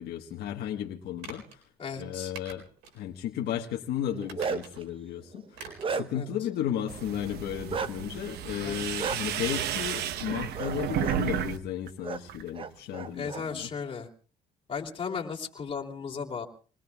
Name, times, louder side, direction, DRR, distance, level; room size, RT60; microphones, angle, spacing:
voice 1, 0.0-1.6 2.0-2.6 2.9-5.6 5.9-13.7, left 10 dB, 75° left, 2 dB, 1.4 m, -34 dB
sound 1, 1.2-1.6 2.3-3.0 3.4-3.5 4.2-4.9 5.5-6.0 6.3-6.4, right 4 dB, 90° right, 4.1 m, -45 dB
voice 2, 1.8-2.3 6.1-6.3 8.6-8.7 13.1-14.1 14.7-16.5, left 6 dB, 35° left, 0 dB, 2.9 m, -35 dB
Bark, 4.0-4.8 5.3-6.3 7.7-7.9 9.0-9.2 10.5-10.7 11.0-11.2 12.0-12.2 12.5-13.4, right 5 dB, 30° right, 0.8 m, -33 dB
sound 2, 6.9-11.6 11.9-12.5, right 10 dB, 75° right, 0.9 m, -33 dB
27.0 x 20.5 x 2.4 m, 0.39 s
cardioid pair, 110°, 17 cm